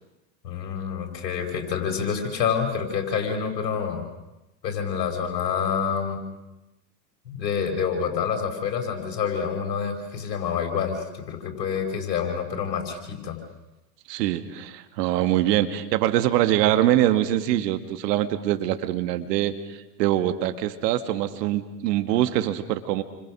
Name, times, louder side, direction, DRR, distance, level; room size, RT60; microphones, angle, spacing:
voice 1, 0.4-4.0 4.6-6.2 7.3-13.4, left 7 dB, 85° left, 3 dB, 5.2 m, -27 dB
voice 2, 14.1-23.0, right 13 dB, 70° right, 9 dB, 2.1 m, -24 dB
29.5 x 25.5 x 6.3 m, 0.98 s
hypercardioid pair, 90°, 50 cm